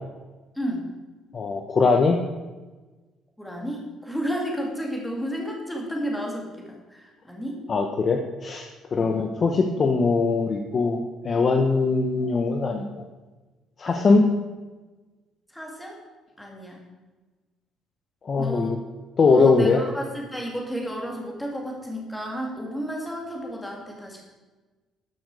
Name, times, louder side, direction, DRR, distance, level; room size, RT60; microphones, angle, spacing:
voice 1, 1.3-2.2 7.7-12.8 13.8-14.3 18.2-18.8 19.2-19.8, left 4 dB, 30° left, 4 dB, 0.8 m, -21 dB
voice 2, 3.4-7.6 8.9-9.2 13.9-14.3 15.5-16.0 16.4-16.8 18.4-18.8 19.3-24.2, equal, 5° left, -1 dB, 2.3 m, -32 dB
13.0 x 10.5 x 4.8 m, 1.2 s
cardioid pair, 170°, 0 cm